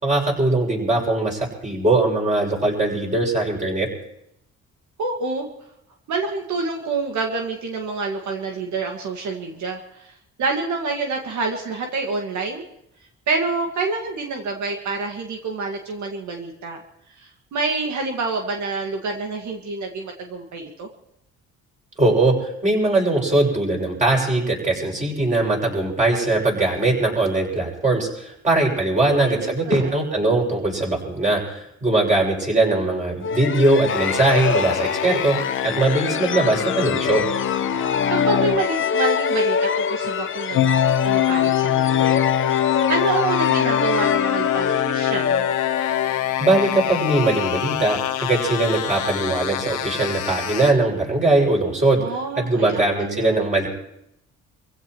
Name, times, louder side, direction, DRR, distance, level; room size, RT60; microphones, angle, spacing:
voice 1, 0.0-3.9 22.0-35.4 35.6-37.2 46.4-53.7, right 2 dB, 25° right, -2 dB, 6.6 m, -21 dB
voice 2, 5.0-5.5 6.1-10.1 10.4-12.6 13.3-16.8 17.2-20.9 29.0-29.9 35.6-35.8 37.8-45.5 52.0-53.4, right 3 dB, 70° right, 2 dB, 2.0 m, -27 dB
sound 1, 33.2-46.7, left 6 dB, 40° left, 0.7 m, -25 dB
sound 2, 33.9-38.6 40.5-50.7, left 11 dB, 85° left, 1.4 m, -24 dB
26.0 x 16.0 x 3.1 m, 0.78 s
cardioid pair, 90°, 30 cm